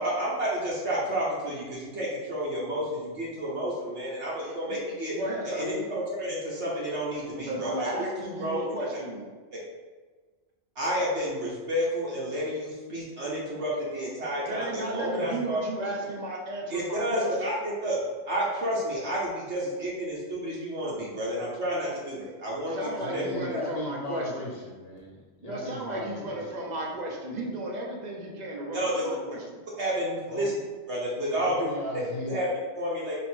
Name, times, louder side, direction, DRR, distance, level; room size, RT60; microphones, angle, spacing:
voice 1, 0.0-5.2 5.4-8.7 10.8-15.9 16.7-18.0 18.2-23.2 23.5-23.6 28.7-29.1 29.8-30.5 30.9-31.7 32.3-33.1, equal, 60° right, -6 dB, 1.1 m, -30 dB
voice 2, 5.1-5.9 7.5-9.3 14.4-17.6 22.7-24.5 25.4-29.6, right 1 dB, 40° right, -1 dB, 0.7 m, -34 dB
voice 3, 23.0-26.8 30.3-30.5 31.4-32.4, left 1 dB, 65° left, -2 dB, 0.9 m, -38 dB
3.4 x 3.0 x 4.3 m, 1.4 s
omnidirectional pair, 1.4 m